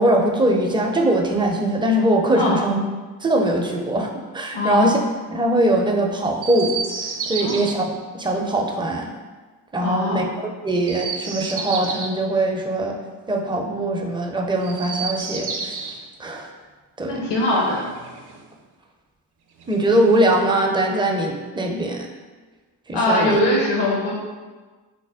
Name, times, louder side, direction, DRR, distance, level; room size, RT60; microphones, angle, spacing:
voice 1, 0.0-2.8 3.2-5.0 5.3-6.7 7.3-7.9 8.2-9.1 9.7-10.2 10.6-13.0 13.3-15.7 16.2-16.5 17.0-17.2 19.7-22.1 22.9-23.4, right 1 dB, 10° right, 1 dB, 0.4 m, -21 dB
voice 2, 2.4-2.7 4.5-5.0 7.4-7.7 9.8-10.3 17.1-17.8 22.9-24.1, left 1 dB, 55° left, -3 dB, 0.8 m, -21 dB
Chirp tweet, 6.4-7.7 10.7-12.2 14.6-16.0 17.4-18.5 19.6-20.5, right 5 dB, 55° right, 0.6 m, -31 dB
3.3 x 2.1 x 3.4 m, 1.3 s
supercardioid pair, 45°, 49 cm